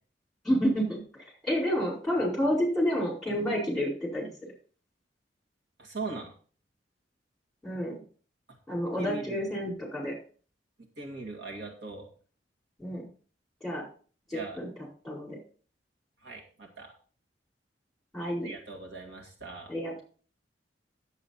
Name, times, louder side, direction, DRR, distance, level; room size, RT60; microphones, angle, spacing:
voice 1, 0.4-1.0 1.4-4.3 7.6-8.0 8.7-10.1 12.8-13.0 13.6-13.8 14.3-14.7 15.0-15.4 18.1-18.5 19.7-20.0, equal, ahead, -3 dB, 5.0 m, -29 dB
voice 2, 5.8-6.3 9.0-9.4 11.0-12.1 14.3-14.6 16.2-16.9 18.4-19.7, right 3 dB, 70° right, 0 dB, 2.0 m, -40 dB
9.9 x 8.2 x 4.2 m, 0.41 s
head